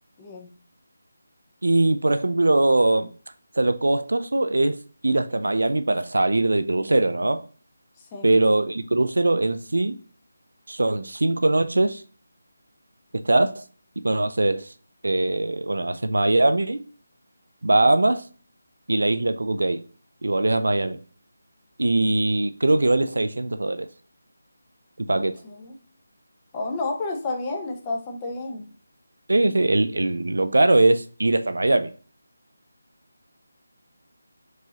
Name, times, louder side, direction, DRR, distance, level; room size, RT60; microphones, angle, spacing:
voice 1, 0.2-0.5 8.1-8.3 25.1-25.8 26.5-28.6, left 3 dB, 15° left, 0.6 m, -31 dB
voice 2, 1.6-3.1 3.6-4.8 5.0-7.4 8.2-10.0 10.7-12.0 13.1-13.6 14.0-14.7 15.0-16.8 17.6-18.2 18.9-19.8 20.2-21.0 21.8-23.9 25.0-25.4 29.3-31.9, right 2 dB, 65° right, 0.4 m, -21 dB
4.6 x 2.7 x 2.8 m
figure-of-eight pair, 155°, 0 cm